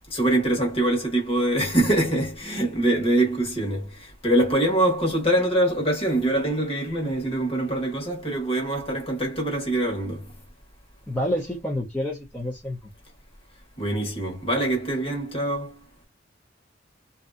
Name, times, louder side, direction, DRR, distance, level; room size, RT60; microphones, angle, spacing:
voice 1, 0.1-10.3 13.8-15.8, right 1 dB, 30° left, 1.4 m, -24 dB
voice 2, 11.1-12.8, equal, 10° left, 0.7 m, -28 dB
3.0 x 2.7 x 2.5 m
head